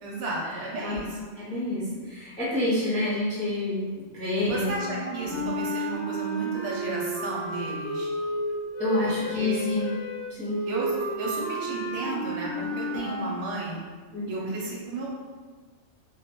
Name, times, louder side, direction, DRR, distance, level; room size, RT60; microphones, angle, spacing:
voice 1, 0.0-1.3 4.5-8.1 9.0-9.7 10.7-13.8 14.3-15.2, right 2 dB, 75° right, -3 dB, 0.9 m, -34 dB
voice 2, 1.5-3.9 4.1-4.8 5.2-5.5 8.8-9.9 10.3-10.6 12.6-13.0 14.1-14.4, left 1 dB, 10° left, -9 dB, 0.4 m, -28 dB
sound 1, 4.7-13.4, right 1 dB, 60° left, 0.7 m, -32 dB
2.2 x 2.1 x 2.8 m, 1.5 s
omnidirectional pair, 1.3 m